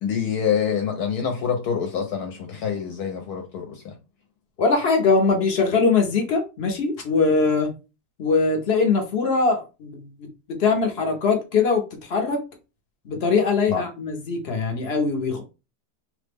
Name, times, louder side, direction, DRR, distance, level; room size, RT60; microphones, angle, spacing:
voice 1, 0.0-4.0 13.7-13.8, left 7 dB, 75° left, 1.1 m, -26 dB
voice 2, 4.6-7.7 8.2-12.4 13.0-15.4, left 4 dB, 60° left, 0.7 m, -22 dB
3.2 x 2.0 x 3.3 m
omnidirectional pair, 1.7 m